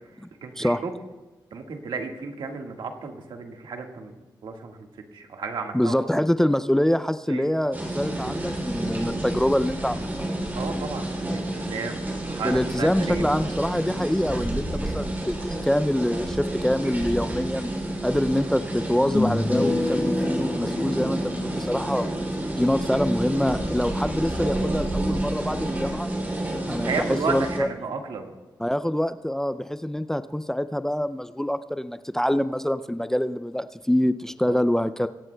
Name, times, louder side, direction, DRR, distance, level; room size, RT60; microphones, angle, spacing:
voice 1, 0.4-1.0 1.5-4.1 4.4-4.9 5.1-6.1 7.3-7.5 10.6-13.4 26.8-28.3 34.5-34.6, right 4 dB, 80° right, 3 dB, 1.6 m, -33 dB
voice 2, 5.7-10.1 12.4-17.7 18.0-22.1 22.6-26.1 26.7-27.7 28.6-35.1, left 1 dB, 5° left, 12 dB, 0.3 m, -25 dB
sound 1, 7.7-27.6, right 1 dB, 25° right, 2.8 m, -30 dB
sound 2, 18.9-24.2, left 2 dB, 25° left, 1.1 m, -30 dB
22.5 x 17.5 x 2.2 m, 1.2 s
wide cardioid pair, 120°, 8 cm